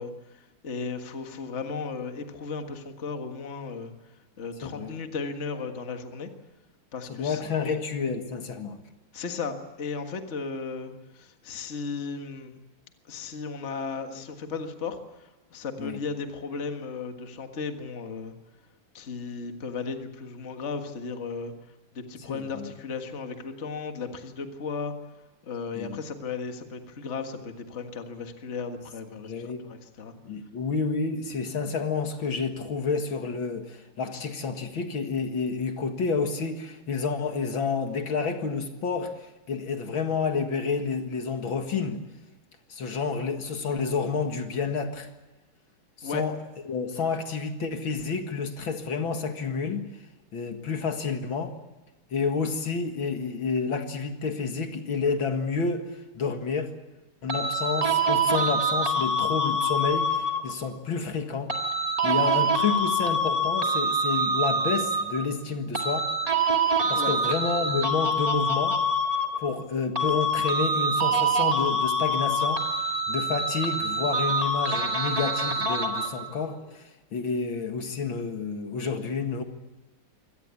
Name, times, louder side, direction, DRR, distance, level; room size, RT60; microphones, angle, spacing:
voice 1, 0.0-6.3 6.9-7.8 9.1-12.6 13.1-18.4 18.9-21.5 21.9-24.9 25.4-30.1 46.0-46.2 66.9-67.1, left 4 dB, 35° left, 5 dB, 1.8 m, -35 dB
voice 2, 4.6-5.0 7.1-8.8 15.8-16.0 22.3-22.7 25.7-26.0 29.2-29.6 30.2-42.0 42.7-45.1 46.0-46.4 46.7-49.9 50.3-51.5 52.1-55.9 56.1-56.7 57.2-61.5 62.0-66.1 66.9-68.8 69.4-79.4, left 5 dB, 65° left, 6 dB, 2.5 m, -29 dB
sound 1, 57.3-60.7 61.5-65.3 65.7-69.7 70.0-76.3, right 1 dB, 20° right, 1.7 m, -25 dB
25.0 x 18.0 x 8.4 m, 1.1 s
omnidirectional pair, 2.3 m